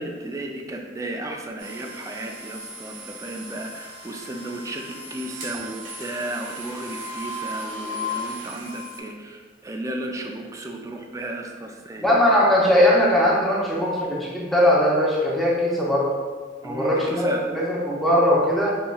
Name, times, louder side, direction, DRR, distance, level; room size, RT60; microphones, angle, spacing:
voice 1, 0.0-12.2 16.6-17.4, right 1 dB, 15° right, 2 dB, 0.3 m, -34 dB
sound 1, 1.6-9.0, left 1 dB, 80° right, 1.1 m, -36 dB
voice 2, 12.0-16.1 16.6-18.7, left 1 dB, ahead, -5 dB, 0.7 m, -20 dB
5.4 x 3.0 x 2.3 m, 1.5 s
head